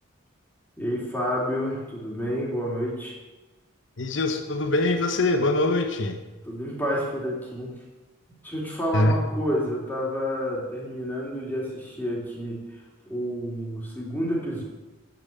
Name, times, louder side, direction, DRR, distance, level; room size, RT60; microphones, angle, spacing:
voice 1, 0.8-3.2 6.4-7.7 8.4-14.6, equal, 10° left, -4 dB, 3.3 m, -29 dB
voice 2, 4.0-6.2 8.9-9.2, left 2 dB, 70° left, 5 dB, 1.0 m, -23 dB
9.1 x 8.9 x 8.5 m, 1.2 s
head